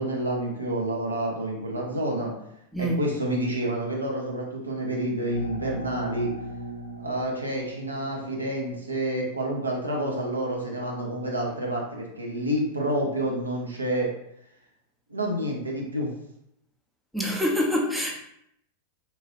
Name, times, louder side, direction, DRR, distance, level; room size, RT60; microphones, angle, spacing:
voice 1, 0.0-2.3 2.8-6.3 7.0-14.1 15.1-16.1, right 1 dB, 80° right, -1 dB, 0.6 m, -29 dB
sound 1, 5.3-8.8, left 1 dB, 80° left, 0.5 m, -38 dB
voice 2, 17.1-18.1, equal, ahead, -2 dB, 0.5 m, -25 dB
2.9 x 2.3 x 3.0 m, 0.76 s
figure-of-eight pair, 90°, 0 cm